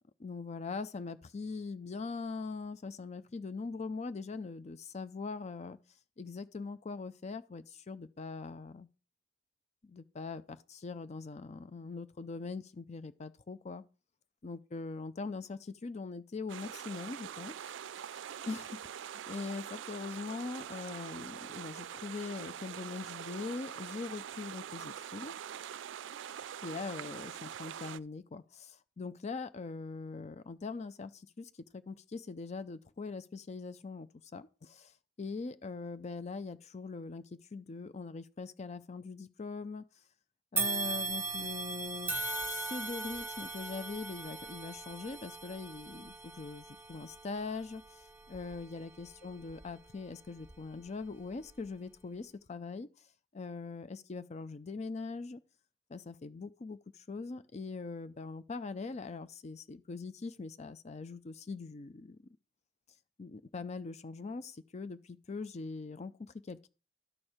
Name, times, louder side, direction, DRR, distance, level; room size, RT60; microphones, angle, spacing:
voice 1, 0.2-5.8 6.2-8.9 9.8-13.8 14.4-18.1 18.5-25.3 26.6-39.8 40.5-53.1 53.3-55.4 55.9-62.2 63.2-66.7, left 4 dB, 40° left, 0.5 m, -42 dB
sound 1, 16.5-28.0, right 9 dB, 80° right, 0.4 m, -44 dB
sound 2, 40.6-49.9 50.4-50.5 51.5-51.6, right 3 dB, 10° right, 1.1 m, -39 dB
12.0 x 4.5 x 4.9 m
head